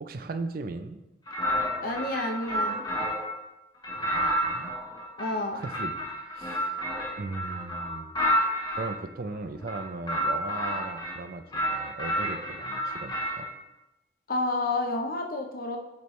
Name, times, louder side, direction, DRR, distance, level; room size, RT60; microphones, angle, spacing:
voice 1, 0.0-1.0 4.0-4.7 5.5-6.8 7.2-8.1 8.7-13.5, right 3 dB, 55° right, 9 dB, 0.5 m, -38 dB
sound 1, 1.3-3.4 3.8-8.9 9.6-11.2 11.5-13.5, equal, 25° left, 1.0 m, -30 dB
voice 2, 1.8-2.8 5.2-5.6 14.3-15.8, left 2 dB, 55° left, 3 dB, 0.8 m, -30 dB
8.3 x 4.6 x 3.2 m, 0.99 s
head